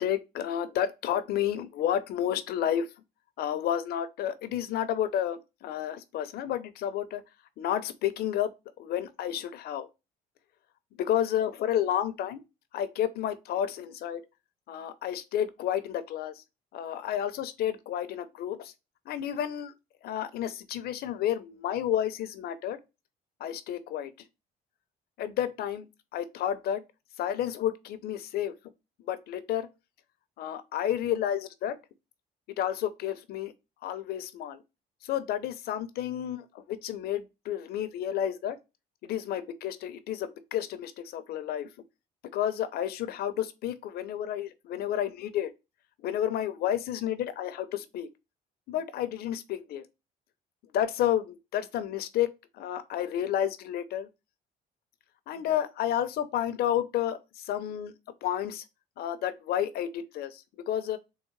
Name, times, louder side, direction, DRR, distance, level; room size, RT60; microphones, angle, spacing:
voice 1, 0.0-2.9 3.4-7.2 7.6-8.5 8.8-9.9 11.0-12.4 12.7-14.2 14.7-16.3 16.7-18.7 19.1-19.7 20.0-22.8 23.4-24.1 25.2-26.8 27.2-28.5 29.1-29.7 30.4-31.8 32.6-33.5 33.8-34.6 35.1-38.6 39.0-41.7 42.3-45.5 46.0-48.1 48.7-49.8 50.7-52.3 52.6-54.1 55.3-57.2 57.5-57.9 58.2-58.6 59.0-61.0, left 10 dB, 65° left, 0.6 m, -31 dB
3.7 x 3.0 x 3.1 m
cardioid pair, 110°, 17 cm